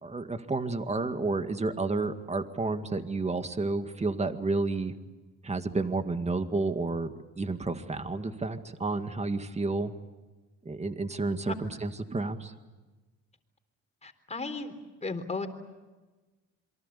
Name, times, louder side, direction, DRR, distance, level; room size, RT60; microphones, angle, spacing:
voice 1, 0.0-4.9 5.4-9.9 10.7-12.5, right 3 dB, 20° right, 8 dB, 2.0 m, -31 dB
voice 2, 14.0-14.7 15.0-15.5, left 3 dB, 20° left, 7 dB, 3.8 m, -34 dB
28.0 x 23.5 x 8.4 m, 1.2 s
cardioid pair, 90°, 30 cm